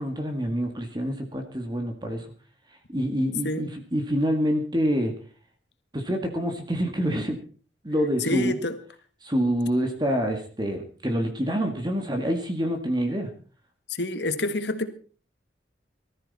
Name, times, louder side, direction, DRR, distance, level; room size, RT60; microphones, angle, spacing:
voice 1, 0.0-2.3 2.9-5.1 5.9-7.4 7.8-8.5 9.2-13.3, equal, 25° right, 4 dB, 1.9 m, -26 dB
voice 2, 3.4-3.7 8.2-8.8 13.9-14.9, left 2 dB, 65° left, 10 dB, 1.7 m, -28 dB
19.5 x 13.5 x 4.2 m, 0.39 s
head